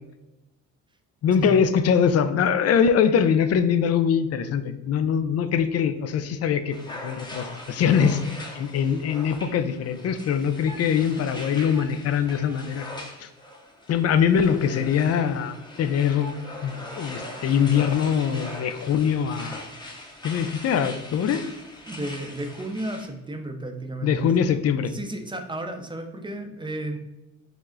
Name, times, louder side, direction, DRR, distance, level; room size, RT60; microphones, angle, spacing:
voice 1, 1.2-8.2 8.5-12.8 13.2-13.3 13.9-16.3 16.6-19.7 20.2-21.4 24.0-24.9, left 7 dB, 55° left, 11 dB, 0.5 m, -23 dB
sound 1, 6.7-23.1, left 1 dB, 15° left, 0.8 m, -41 dB
voice 2, 21.9-24.3 24.9-27.0, right 2 dB, 15° right, 5 dB, 0.5 m, -33 dB
4.9 x 2.0 x 3.8 m, 0.99 s
cardioid pair, 90°, 30 cm